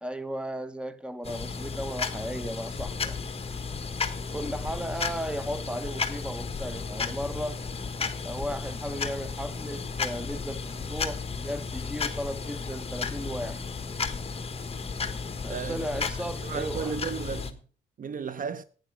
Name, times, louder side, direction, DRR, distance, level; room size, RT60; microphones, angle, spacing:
voice 1, 0.0-3.2 4.3-7.6 8.2-13.6 15.4-16.9, equal, 5° right, 1.0 m, -35 dB
sound 1, 1.2-17.5, left 5 dB, 30° left, 1.3 m, -34 dB
voice 2, 15.5-17.6 18.0-18.6, right 6 dB, 45° right, 0.6 m, -35 dB
11.5 x 9.2 x 4.8 m
cardioid pair, 90°, 20 cm